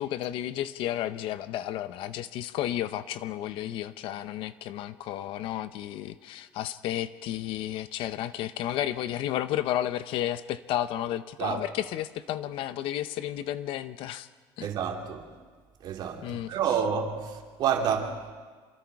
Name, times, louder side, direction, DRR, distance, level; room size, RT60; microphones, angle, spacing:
voice 1, 0.0-14.3 14.6-14.7 16.2-16.5, left 12 dB, 60° left, 0.9 m, -32 dB
voice 2, 14.6-15.3 15.8-18.3, right 7 dB, 50° right, 2.9 m, -29 dB
27.0 x 24.5 x 4.8 m
cardioid pair, 150°, 10 cm